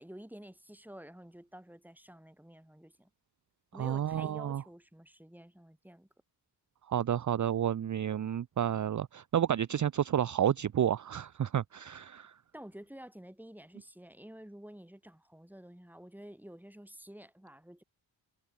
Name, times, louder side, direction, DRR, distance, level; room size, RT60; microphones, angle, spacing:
voice 1, 0.0-3.1 3.7-6.1 12.5-17.8, equal, 5° right, 2.9 m, -50 dB
voice 2, 3.8-4.6 6.9-12.3, right 10 dB, 45° right, 0.6 m, -30 dB
cardioid pair, 45°, 42 cm